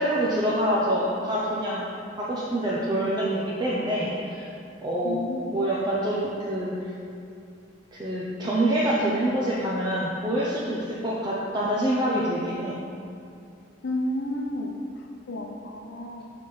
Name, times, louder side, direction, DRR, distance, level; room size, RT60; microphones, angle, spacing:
voice 1, 0.0-1.8 2.2-4.4 4.8-5.2 5.5-6.7 7.9-12.8, right 1 dB, 20° right, -7 dB, 0.6 m, -26 dB
voice 2, 5.0-5.6 13.8-14.7 15.3-16.3, left 1 dB, 75° left, 2 dB, 0.7 m, -31 dB
6.0 x 3.4 x 5.4 m, 2.5 s
head